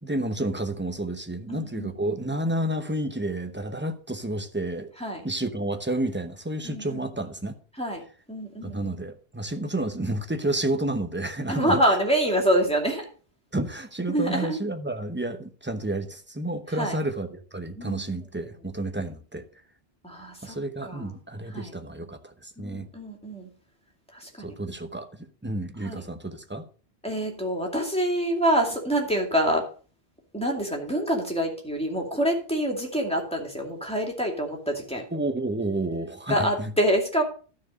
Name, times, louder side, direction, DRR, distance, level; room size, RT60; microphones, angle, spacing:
voice 1, 0.0-4.9 5.2-7.6 8.6-11.8 13.5-19.4 20.4-22.9 24.4-26.6 35.1-36.7, right 1 dB, 10° right, 7 dB, 0.9 m, -30 dB
voice 2, 1.5-2.1 5.0-5.2 6.6-7.1 7.8-8.0 8.3-8.9 11.5-13.1 14.1-14.6 16.8-17.0 17.8-18.0 20.0-20.6 20.8-21.1 21.5-21.7 22.6-23.5 24.1-24.7 25.8-26.0 27.0-29.6 30.3-35.0 36.3-37.2, equal, 5° left, 0 dB, 2.4 m, -26 dB
12.5 x 4.7 x 6.3 m, 0.40 s
omnidirectional pair, 1.1 m